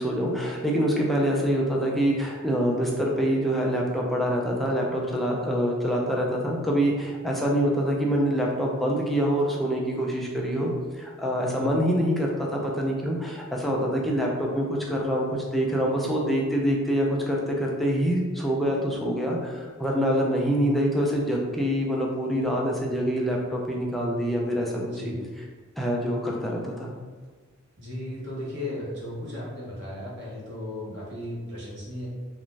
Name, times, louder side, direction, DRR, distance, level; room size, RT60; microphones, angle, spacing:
voice 1, 0.0-25.1 25.8-26.9, equal, ahead, -3 dB, 0.3 m, -25 dB
voice 2, 24.8-25.1 27.8-32.1, left 1 dB, 60° right, -6 dB, 0.9 m, -35 dB
2.4 x 2.1 x 3.1 m, 1.5 s
head